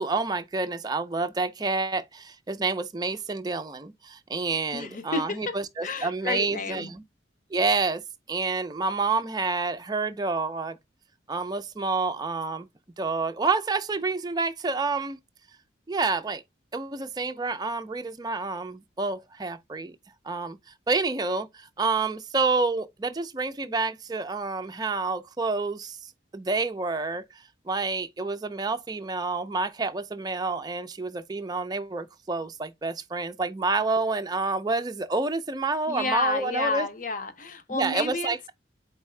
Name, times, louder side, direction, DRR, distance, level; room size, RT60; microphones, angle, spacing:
voice 1, 0.0-7.0 7.5-8.0 8.3-10.8 11.3-12.7 13.0-15.2 15.9-16.4 16.7-20.0 20.2-20.6 20.9-27.2 27.7-36.9 37.7-38.5, right 3 dB, 20° right, 0.4 m, -28 dB
voice 2, 4.7-6.9 35.9-38.3, left 3 dB, 45° left, 0.7 m, -31 dB
4.6 x 3.3 x 3.1 m
head